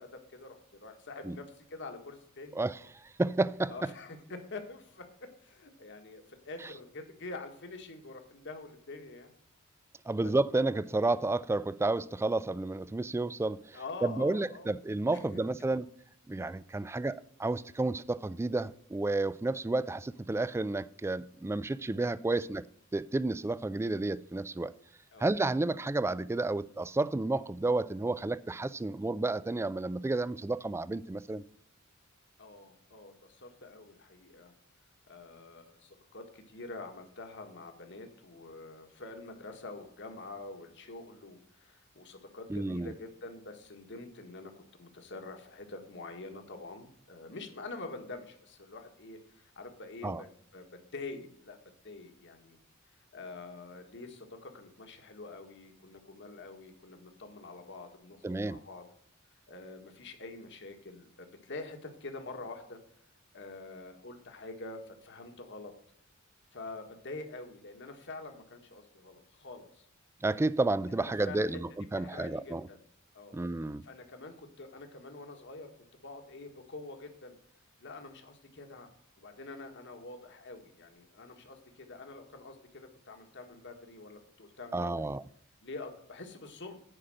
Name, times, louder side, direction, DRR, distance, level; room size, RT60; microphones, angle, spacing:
voice 1, 0.0-2.6 3.7-5.1 5.4-9.3 10.2-10.3 13.7-14.7 15.1-15.4 25.1-25.3 32.4-34.5 35.1-50.6 50.9-51.6 51.8-52.6 53.1-58.8 59.5-62.8 63.3-65.7 66.5-69.9 71.0-71.6 72.0-72.8 73.1-73.4 73.8-75.7 76.0-77.4 77.8-78.9 79.2-85.1 85.6-86.8, left 3 dB, 60° left, 1.6 m, -46 dB
voice 2, 3.2-3.7 10.1-15.9 16.3-22.6 22.9-24.7 25.2-31.4 42.5-42.9 50.0-50.2 58.2-58.6 70.2-72.6 73.3-73.8 84.7-85.2, right 2 dB, 10° right, 0.3 m, -31 dB
9.9 x 5.1 x 7.6 m
head